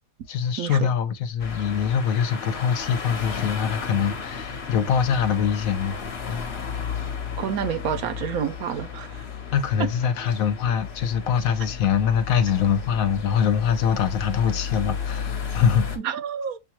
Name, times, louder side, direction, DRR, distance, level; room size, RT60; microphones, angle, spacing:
voice 1, 0.3-6.0 9.5-15.9, left 7 dB, 70° left, 1.1 m, -23 dB
sound 1, 1.4-16.0, left 6 dB, 50° left, 1.1 m, -33 dB
voice 2, 7.4-9.1 16.0-16.6, right 8 dB, 75° right, 1.1 m, -28 dB
6.9 x 2.3 x 2.9 m
omnidirectional pair, 1.5 m